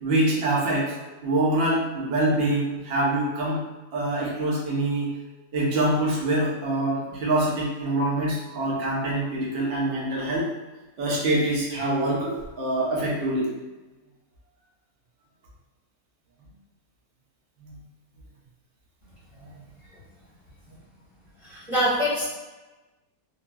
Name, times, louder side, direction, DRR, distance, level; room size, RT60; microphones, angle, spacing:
voice 1, 0.0-0.9 1.2-3.6 3.9-5.1 5.5-10.5 11.0-13.5 17.6-17.8 19.4-19.5 20.7-20.8, right 1 dB, 50° right, -5 dB, 0.8 m, -25 dB
voice 2, 21.4-22.2, equal, 10° left, -10 dB, 1.3 m, -24 dB
2.8 x 2.7 x 2.2 m, 1.1 s
omnidirectional pair, 1.7 m